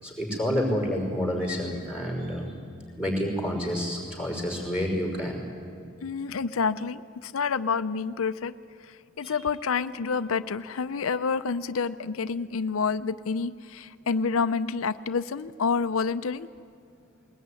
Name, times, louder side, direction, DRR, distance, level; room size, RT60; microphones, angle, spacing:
voice 1, 0.0-2.5 3.0-5.5 9.2-9.4, equal, 5° right, 1 dB, 5.4 m, -29 dB
voice 2, 6.0-8.5 8.8-16.5, left 5 dB, 80° left, 11 dB, 0.6 m, -28 dB
21.0 x 19.5 x 9.7 m, 2.4 s
head